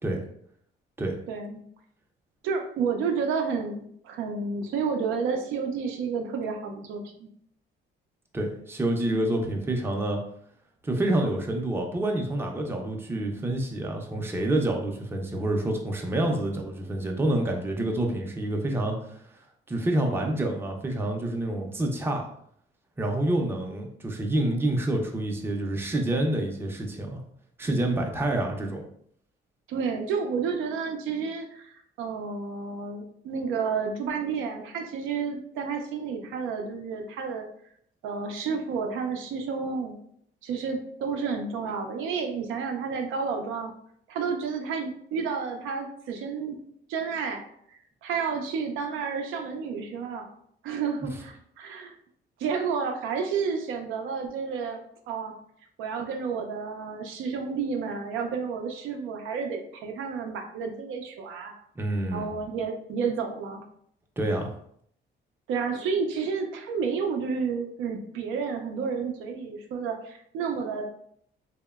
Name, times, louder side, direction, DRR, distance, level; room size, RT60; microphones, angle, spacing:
voice 1, 1.3-1.6 2.4-7.3 29.7-37.4 38.0-39.9 40.4-43.7 44.1-46.6 46.9-47.4 47.7-50.3 50.6-51.9 52.4-54.8 55.1-55.3 55.8-61.5 62.1-63.6 65.5-70.8, right 5 dB, 85° right, 4 dB, 0.4 m, -31 dB
voice 2, 8.3-10.2 10.8-19.2 19.7-22.3 23.0-27.2 27.6-28.8 61.8-62.3 64.2-64.5, right 1 dB, 10° right, 2 dB, 0.4 m, -27 dB
2.8 x 2.0 x 2.3 m, 0.67 s
cardioid pair, 90°, 20 cm